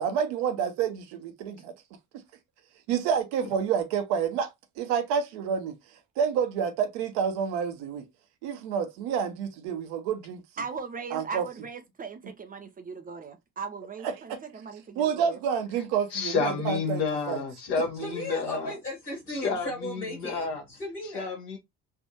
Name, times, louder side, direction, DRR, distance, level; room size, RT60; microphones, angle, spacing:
voice 1, 0.0-1.7 2.9-4.5 4.8-5.7 6.2-8.0 8.4-10.4 11.1-11.4 14.3-14.4 15.0-17.0 17.3-17.4, right 7 dB, 60° right, 0.8 m, -28 dB
voice 2, 10.6-15.4, right 5 dB, 20° right, 0.4 m, -39 dB
voice 3, 16.1-18.7 19.4-20.6 21.1-21.6, left 5 dB, 60° left, 1.1 m, -30 dB
voice 4, 18.0-21.4, left 1 dB, 85° left, 1.6 m, -36 dB
3.3 x 2.5 x 2.8 m
figure-of-eight pair, 50°, 44 cm